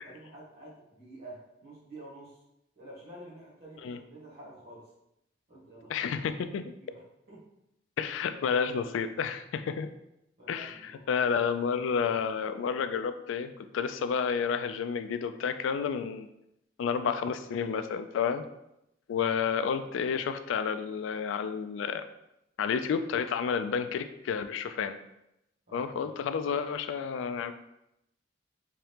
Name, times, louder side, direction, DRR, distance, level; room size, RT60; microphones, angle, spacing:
voice 1, 0.0-2.4 2.7-4.9 5.5-7.0 7.3-7.5 10.4-11.3 19.1-19.4 25.7-26.1, right 1 dB, 55° right, -6 dB, 1.4 m, -49 dB
voice 2, 5.9-6.7 8.0-9.9 10.5-16.3 16.8-18.4 19.1-22.1 22.6-25.0 25.7-27.5, left 6 dB, 90° left, 10 dB, 0.3 m, -30 dB
3.6 x 2.9 x 3.4 m, 0.84 s
head